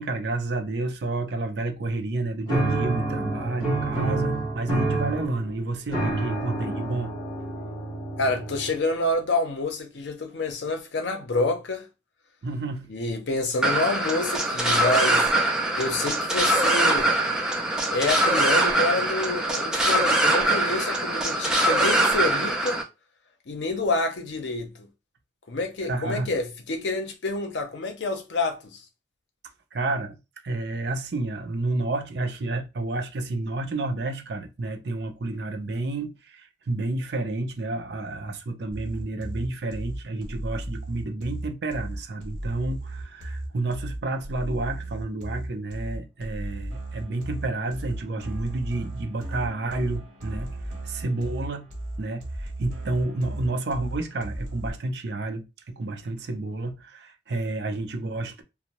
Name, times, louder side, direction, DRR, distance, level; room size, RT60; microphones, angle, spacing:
voice 1, 0.0-7.1 12.4-12.9 25.8-26.3 29.7-30.2 30.4-50.5 50.8-51.7 52.0-58.4, right 2 dB, 65° right, 0.5 m, -30 dB
sound 1, 2.5-9.0, right 2 dB, 25° left, 1.0 m, -28 dB
voice 2, 8.2-11.9 12.9-15.3 15.8-17.2 17.9-22.8 23.5-24.9 25.5-28.8, left 2 dB, 75° left, 0.6 m, -28 dB
sound 2, 13.6-22.8, right 1 dB, 5° right, 0.4 m, -23 dB
sound 3, 38.7-54.7, right 1 dB, 40° right, 0.9 m, -35 dB
2.6 x 2.0 x 2.9 m
head